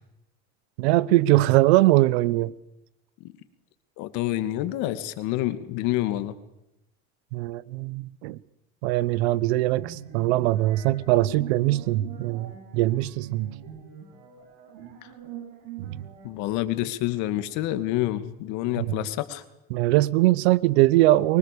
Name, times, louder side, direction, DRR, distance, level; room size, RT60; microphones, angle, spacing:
voice 1, 0.8-2.5 7.3-8.4 8.8-13.5 15.8-16.0 18.8-18.9 19.7-21.4, right 17 dB, 85° right, 1.1 m, -21 dB
voice 2, 4.0-6.4 16.2-19.4, left 15 dB, 65° left, 2.5 m, -28 dB
sound 1, 9.1-16.3, right 9 dB, 70° right, 7.3 m, -43 dB
24.0 x 24.0 x 7.0 m
supercardioid pair, 125°, 31 cm